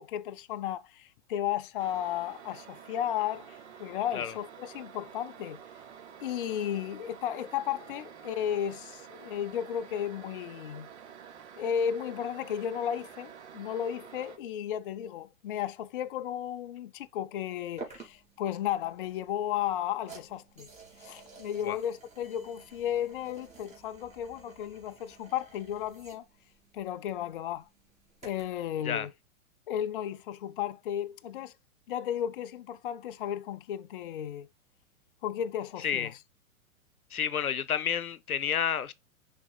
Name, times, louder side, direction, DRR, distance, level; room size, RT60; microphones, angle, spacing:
voice 1, 0.0-5.6 6.2-10.9 11.6-20.7 21.0-26.2 26.7-27.7 28.2-29.1 29.7-31.5 31.9-34.5 35.2-36.2, left 10 dB, 40° left, 0.5 m, -34 dB
sound 1, 1.8-14.4, right 8 dB, 50° right, 1.4 m, -49 dB
sound 2, 17.8-28.6, right 3 dB, 15° right, 2.9 m, -52 dB
voice 2, 35.8-36.1 37.1-38.9, left 8 dB, 75° left, 0.8 m, -30 dB
11.0 x 4.1 x 2.3 m
figure-of-eight pair, 110°, 44 cm